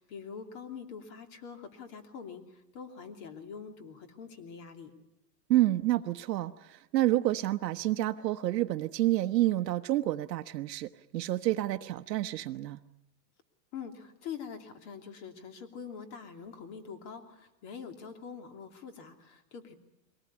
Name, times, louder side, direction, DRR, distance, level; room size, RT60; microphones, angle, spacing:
voice 1, 0.0-4.9 13.7-19.7, left 6 dB, 45° left, 6 dB, 3.0 m, -44 dB
voice 2, 5.5-12.8, right 15 dB, 75° right, 7 dB, 1.0 m, -29 dB
22.5 x 18.0 x 9.6 m, 0.89 s
supercardioid pair, 150°, 50 cm